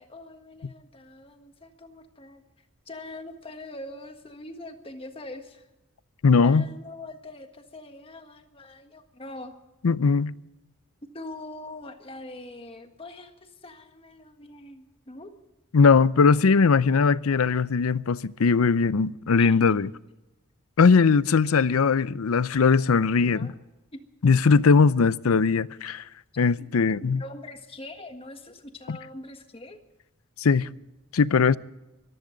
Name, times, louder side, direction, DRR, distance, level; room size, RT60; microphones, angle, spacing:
voice 1, 0.0-2.4 2.9-5.7 6.4-9.5 11.1-15.3 19.4-19.6 23.1-23.5 23.9-24.0 26.6-26.7 27.0-29.8, left 2 dB, 25° left, 1.6 m, -43 dB
voice 2, 6.2-6.7 9.8-10.3 15.7-19.9 20.8-23.5 24.2-26.0 26.4-27.2 28.9-29.0 30.4-30.7 31.1-31.6, left 5 dB, 85° left, 0.5 m, -20 dB
24.5 x 15.0 x 3.9 m
head